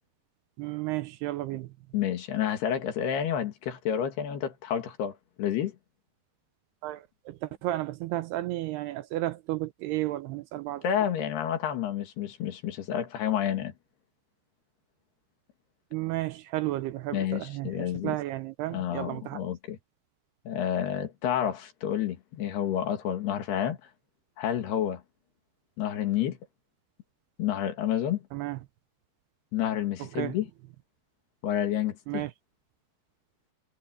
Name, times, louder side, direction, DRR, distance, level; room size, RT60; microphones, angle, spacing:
voice 1, 0.6-1.7 6.8-10.8 15.9-17.7 18.0-19.4 28.3-28.6 30.0-30.4 32.1-32.3, right 16 dB, 80° right, 2.5 m, -33 dB
voice 2, 1.9-5.8 10.8-13.7 17.1-18.2 18.7-19.8 20.5-23.8 24.4-25.0 25.8-26.4 27.4-28.2 29.5-30.5 31.4-32.2, left 10 dB, 65° left, 3.9 m, -29 dB
omnidirectional pair, 5.1 m